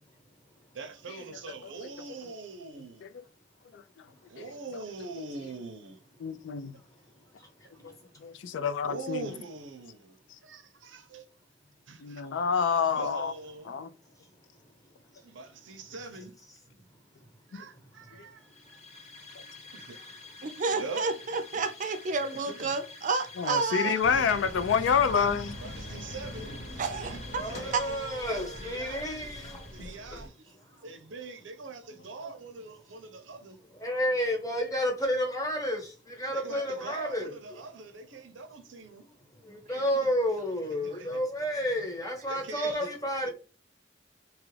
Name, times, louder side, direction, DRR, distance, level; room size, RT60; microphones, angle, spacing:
voice 1, 0.7-3.1 4.3-6.0 6.7-6.8 8.8-10.2 10.4-11.2 11.9-12.3 12.9-13.7 15.2-16.3 17.5-18.8 19.7-20.0 20.7-21.1 22.3-22.8 23.8-24.5 24.8-26.6 26.9-27.9 28.3-29.1 29.7-30.6 30.8-33.6 36.3-39.1 39.7-40.1 40.8-41.2 41.8-41.9 42.3-42.9 43.2-43.3, right 3 dB, 85° right, 0.6 m, -43 dB
voice 2, 6.2-6.8 7.8-7.9 8.2-9.3 12.0-13.3 13.7-13.9 17.5-17.6 23.4-25.5, left 6 dB, 75° left, 0.4 m, -28 dB
sound 1, 18.4-30.2, left 3 dB, 35° left, 0.7 m, -48 dB
voice 3, 20.4-24.1 26.8-28.6 28.8-28.9 39.7-39.8 40.9-41.0, right 4 dB, 45° right, 0.4 m, -31 dB
sound 2, 24.0-30.3, equal, 60° left, 1.0 m, -42 dB
voice 4, 27.4-29.7 30.1-30.2 33.7-37.6 39.4-43.3, equal, 20° left, 1.0 m, -31 dB
2.9 x 2.4 x 3.2 m
head